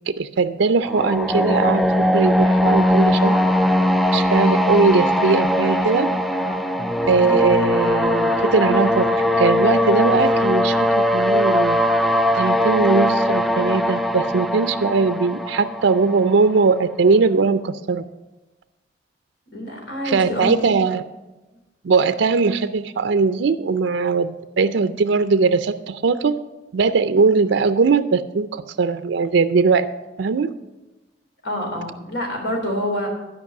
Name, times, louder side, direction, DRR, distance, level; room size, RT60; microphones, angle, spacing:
voice 1, 0.1-3.3 4.1-6.1 7.1-9.1 9.4-11.8 12.3-18.0 20.0-21.0 21.8-26.4 26.7-29.9 30.2-30.5, right 4 dB, 85° right, 10 dB, 0.5 m, -20 dB
sound 1, 0.9-16.7, left 1 dB, ahead, 0.3 m, -20 dB
voice 2, 19.5-20.8 31.4-33.1, left 1 dB, 75° left, 0 dB, 3.4 m, -27 dB
12.0 x 5.3 x 7.9 m, 1.1 s
head